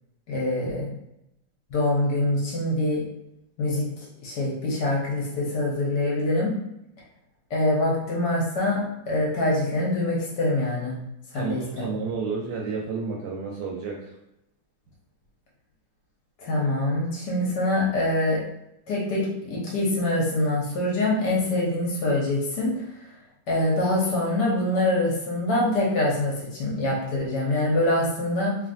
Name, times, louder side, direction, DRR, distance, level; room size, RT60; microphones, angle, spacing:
voice 1, 0.3-0.9 1.7-3.0 3.6-3.9 4.2-6.5 7.5-11.0 11.3-11.9 16.4-18.4 18.9-22.7 23.5-28.6, left 1 dB, 65° left, -4 dB, 1.3 m, -24 dB
voice 2, 11.3-14.1, right 4 dB, 70° right, -2 dB, 1.0 m, -31 dB
3.2 x 2.4 x 2.5 m, 0.84 s
omnidirectional pair, 2.1 m